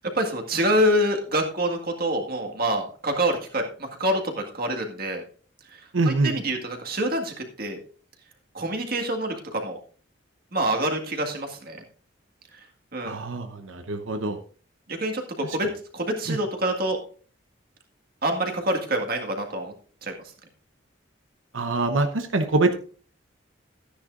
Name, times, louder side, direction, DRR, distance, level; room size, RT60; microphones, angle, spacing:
voice 1, 0.1-5.2 6.1-7.8 8.5-9.8 10.5-11.8 12.9-13.2 14.9-15.7 15.9-17.0 18.2-19.7 20.0-20.2, right 1 dB, 50° right, 3 dB, 1.9 m, -26 dB
voice 2, 5.9-6.3 13.1-14.4 16.3-16.4 21.5-22.7, right 2 dB, 90° right, 7 dB, 0.9 m, -24 dB
13.0 x 10.0 x 2.5 m, 0.41 s
head